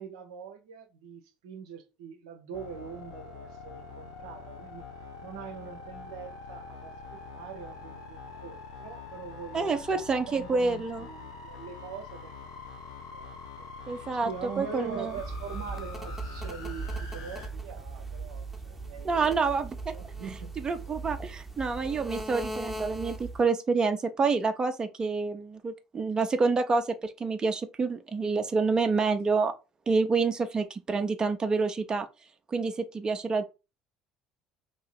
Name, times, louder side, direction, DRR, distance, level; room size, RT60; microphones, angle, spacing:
voice 1, 0.0-4.9 5.2-9.8 10.2-12.6 13.1-19.3 19.9-20.5 20.9-21.0, right 6 dB, 75° right, 0.6 m, -43 dB
sound 1, 2.5-17.5, left 5 dB, 75° left, 0.7 m, -44 dB
voice 2, 9.5-11.0 13.9-14.3 14.6-15.1 19.0-19.9 20.6-29.5 29.9-32.1 32.5-33.4, right 4 dB, 30° right, 0.6 m, -28 dB
sound 2, 15.1-23.5, right 3 dB, 5° right, 0.9 m, -39 dB
3.0 x 2.7 x 4.1 m
hypercardioid pair, 60°, 3 cm